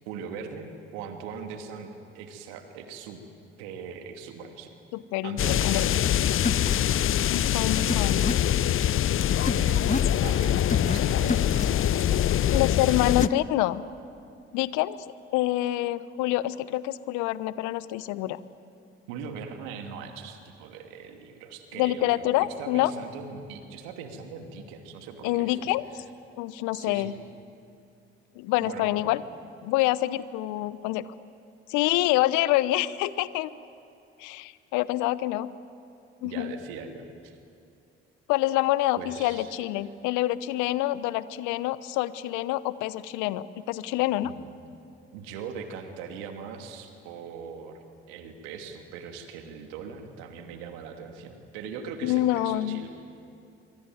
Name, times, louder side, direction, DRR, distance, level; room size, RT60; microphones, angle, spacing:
voice 1, 0.1-3.2 3.6-4.7 5.2-5.9 9.4-13.0 19.1-25.6 25.9-26.0 26.7-27.2 28.6-29.1 36.2-37.4 39.0-39.6 44.2-44.4 45.1-47.8 48.1-52.9, right 6 dB, 75° right, 5 dB, 2.5 m, -41 dB
voice 2, 4.9-5.4 5.6-5.8 7.3-8.2 12.5-13.8 14.5-15.0 15.3-18.4 21.8-22.9 25.2-26.0 26.3-27.1 28.4-29.2 29.6-31.1 31.7-33.5 34.2-35.5 36.2-36.5 38.3-44.3 52.0-52.8, left 16 dB, 70° left, 17 dB, 0.9 m, -26 dB
sound 1, 5.4-13.3, left 11 dB, 45° left, 0.6 m, -24 dB
sound 2, 6.0-6.1 6.4-6.7 7.9-8.3 9.4-10.1 10.7-11.0 11.3-11.7 13.2-13.4, left 4 dB, 25° left, 1.5 m, -29 dB
25.0 x 24.0 x 9.4 m, 2.6 s
hypercardioid pair, 45°, 31 cm